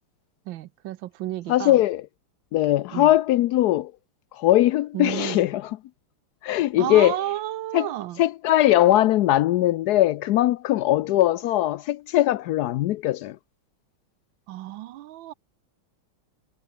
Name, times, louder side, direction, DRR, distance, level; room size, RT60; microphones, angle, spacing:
voice 1, 0.5-1.8 2.9-3.1 4.9-5.4 6.8-8.2 14.5-15.3, right 14 dB, 75° right, 1.3 m, -32 dB
voice 2, 1.5-2.0 2.5-3.9 4.3-5.8 6.4-7.2 7.7-7.9 8.2-13.4, left 14 dB, 85° left, 0.8 m, -20 dB
omnidirectional pair, 2.3 m